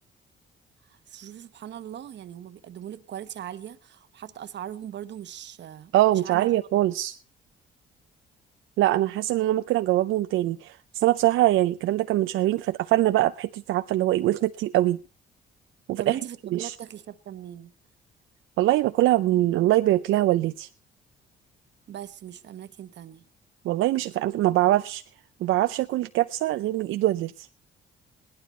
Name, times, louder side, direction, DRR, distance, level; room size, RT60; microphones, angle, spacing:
voice 1, 0.8-6.8 16.0-17.7 21.9-23.2, right 10 dB, 60° right, 1.1 m, -40 dB
voice 2, 5.9-7.2 8.8-15.0 15.9-16.2 16.5-16.7 18.6-20.7 23.6-25.0 25.4-27.5, right 15 dB, 85° right, 0.6 m, -23 dB
17.5 x 11.5 x 4.3 m
cardioid pair, 90°, 20 cm